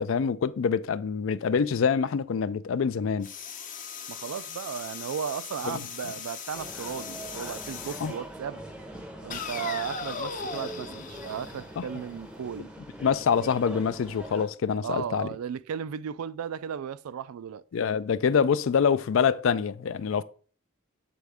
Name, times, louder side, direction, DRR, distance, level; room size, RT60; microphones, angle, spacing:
voice 1, 0.0-3.3 5.6-5.8 8.0-8.1 13.0-15.3 17.7-20.2, left 6 dB, 65° left, 0.4 m, -25 dB
sound 1, 3.2-8.2 9.3-12.2, left 6 dB, 40° left, 0.7 m, -39 dB
voice 2, 4.1-8.6 9.2-12.7 14.8-17.6, right 7 dB, 85° right, 0.3 m, -35 dB
sound 2, 6.5-14.5, right 1 dB, 5° right, 0.6 m, -43 dB
7.7 x 4.1 x 3.5 m
head